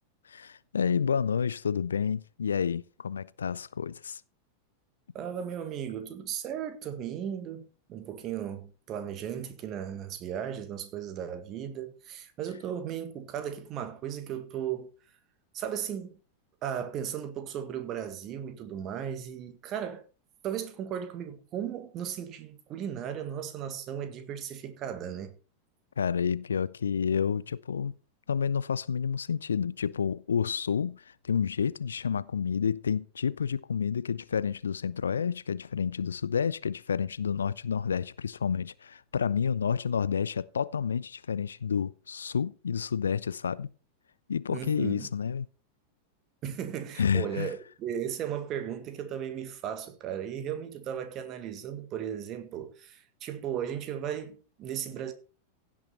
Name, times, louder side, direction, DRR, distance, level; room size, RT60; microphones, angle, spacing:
voice 1, 0.3-4.2 26.0-27.9 28.3-43.7 44.3-45.5 47.0-47.5, left 7 dB, 70° left, 0.4 m, -29 dB
voice 2, 5.1-14.9 15.5-16.2 16.6-20.0 20.4-25.3 44.5-45.1 46.4-55.1, right 9 dB, 35° right, 1.7 m, -36 dB
16.0 x 6.3 x 4.3 m
figure-of-eight pair, 90°, 0 cm